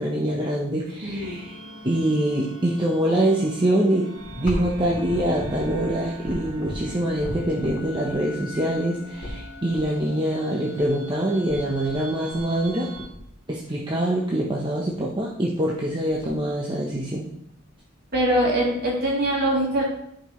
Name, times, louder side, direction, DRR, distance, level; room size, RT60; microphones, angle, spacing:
voice 1, 0.0-1.4 1.8-4.1 4.4-12.9 13.5-17.3, right 1 dB, 20° right, -4 dB, 0.9 m, -24 dB
voice 2, 1.0-1.4 18.1-19.8, right 1 dB, 45° right, -4 dB, 3.0 m, -23 dB
sound 1, 1.2-13.1, equal, 65° right, 1.5 m, -42 dB
sound 2, 4.2-9.8 10.8-10.9 11.1-11.2 11.5-12.0 12.3-12.7 12.9-13.8 14.4-14.5 14.9-15.2 15.6-15.7 15.8-16.4 16.9-17.7 18.1-18.2 19.1-19.2, equal, 40° left, 3.2 m, -36 dB
14.5 x 5.2 x 3.1 m, 0.73 s
head